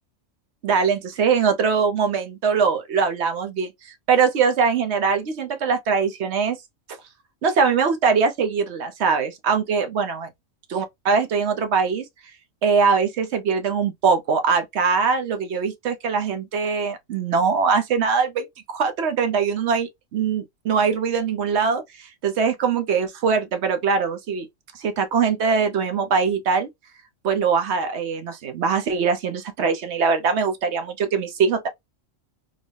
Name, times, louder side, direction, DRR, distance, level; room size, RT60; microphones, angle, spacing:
voice 1, 0.6-6.6 7.4-10.3 10.7-12.0 12.6-24.5 24.7-26.7 27.2-31.7, right 5 dB, 60° right, 0.9 m, -22 dB
3.8 x 2.1 x 3.2 m
omnidirectional pair, 1.3 m